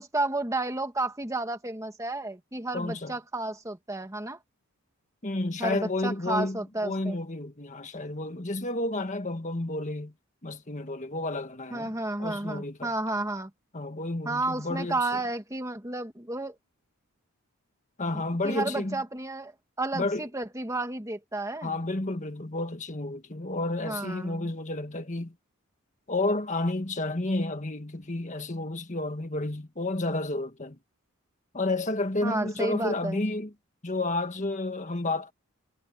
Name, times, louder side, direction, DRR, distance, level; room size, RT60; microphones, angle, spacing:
voice 1, 0.0-4.4 5.6-7.2 11.7-13.5 14.2-16.6 18.1-19.5 19.8-21.8 23.8-24.5 32.2-33.2, right 2 dB, 15° right, 1.6 m, -32 dB
voice 2, 2.7-3.1 5.2-10.1 10.4-11.9 12.2-12.9 13.7-15.2 18.0-19.0 19.9-20.2 21.6-25.3 26.1-30.8 31.5-33.5 33.8-35.3, left 2 dB, 35° left, 1.7 m, -31 dB
head